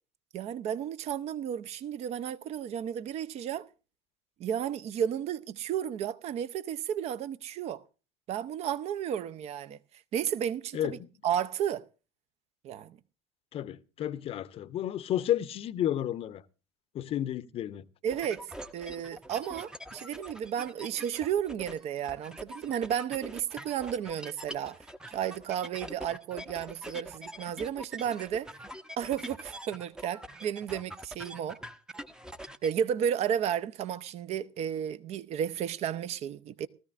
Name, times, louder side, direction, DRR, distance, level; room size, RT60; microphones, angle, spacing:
voice 1, 0.3-3.7 4.4-7.8 8.3-9.8 10.1-11.0 11.2-11.8 12.6-13.0 18.0-18.5 18.7-24.8 25.1-28.5 29.0-31.6 32.6-36.7, right 9 dB, 45° right, 0.7 m, -33 dB
voice 2, 10.7-11.1 13.5-16.4 16.9-17.9, left 11 dB, 40° left, 0.7 m, -32 dB
sound 1, 18.1-32.7, right 1 dB, 5° right, 0.7 m, -44 dB
19.5 x 14.0 x 2.5 m
figure-of-eight pair, 70°, 15 cm